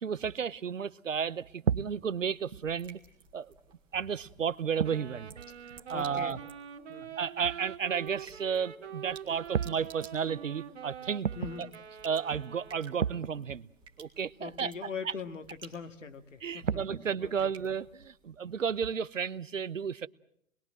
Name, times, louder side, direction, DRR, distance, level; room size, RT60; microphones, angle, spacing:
voice 1, 0.0-3.0 3.3-3.5 3.9-5.3 5.9-6.4 7.2-11.3 12.0-13.7 14.0-15.1 16.4-20.1, right 7 dB, 70° right, 16 dB, 1.0 m, -32 dB
sound 1, 2.0-18.3, right 6 dB, 10° right, 1.9 m, -56 dB
Wind instrument woodwind instrument, 4.8-13.3, right 8 dB, 55° right, 2.4 m, -45 dB
voice 2, 5.9-6.4 6.9-7.1 11.3-11.6 14.4-16.7 17.2-17.5, left 6 dB, 65° left, 9 dB, 2.1 m, -41 dB
27.5 x 21.5 x 7.7 m, 0.69 s
figure-of-eight pair, 125°, 39 cm